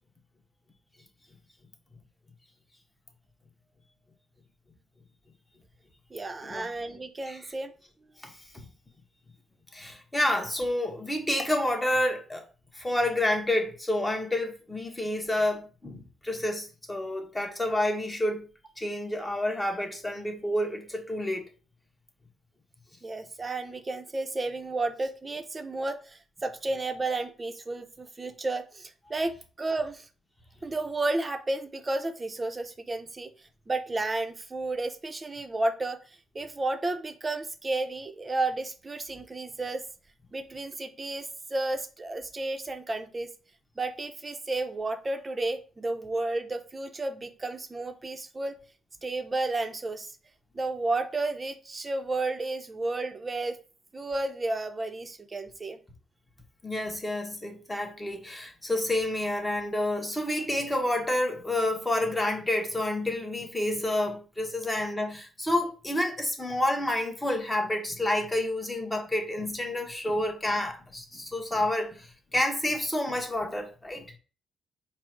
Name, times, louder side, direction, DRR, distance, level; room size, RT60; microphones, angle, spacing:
voice 1, 6.1-7.7 23.0-30.1 30.6-33.3 33.7-36.0 36.3-39.9 40.3-43.3 43.8-48.6 49.0-50.1 50.5-53.6 53.9-55.8, right 2 dB, 25° right, 0.6 m, -32 dB
voice 2, 8.2-8.7 9.7-12.5 12.7-18.5 18.8-21.4 56.6-74.0, left 1 dB, 15° left, 1.0 m, -29 dB
4.4 x 2.0 x 4.5 m
cardioid pair, 90°, 0 cm